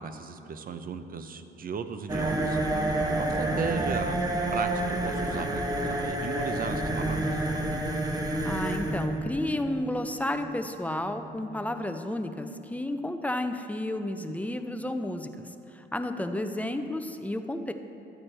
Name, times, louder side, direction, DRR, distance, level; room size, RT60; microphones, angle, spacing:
voice 1, 0.0-2.6 3.2-4.1 4.5-7.5, right 5 dB, 45° right, 9 dB, 0.6 m, -36 dB
sound 1, 2.1-11.7, right 1 dB, 20° right, 1.1 m, -29 dB
voice 2, 8.4-17.7, left 1 dB, 5° left, 7 dB, 0.5 m, -32 dB
13.0 x 8.7 x 3.3 m, 2.8 s
cardioid pair, 90°, 20 cm